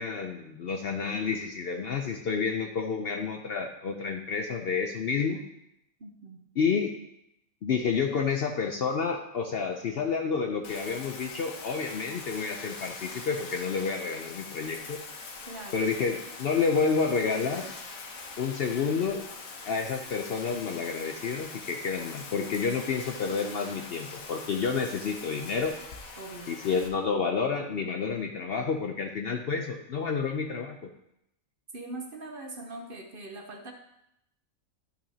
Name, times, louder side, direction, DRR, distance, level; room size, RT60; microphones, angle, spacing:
voice 1, 0.0-5.4 6.6-6.9 7.6-15.0 15.7-17.7 18.4-19.2 19.6-25.7 26.5-30.8, left 5 dB, 60° left, 3 dB, 0.7 m, -29 dB
voice 2, 6.0-6.4 15.5-15.9 26.2-26.5 31.7-33.7, right 2 dB, 45° right, 3 dB, 0.8 m, -41 dB
Bathtub (filling or washing), 10.6-26.9, left 4 dB, 80° left, 1.4 m, -43 dB
11.0 x 5.9 x 2.8 m, 0.81 s
omnidirectional pair, 1.4 m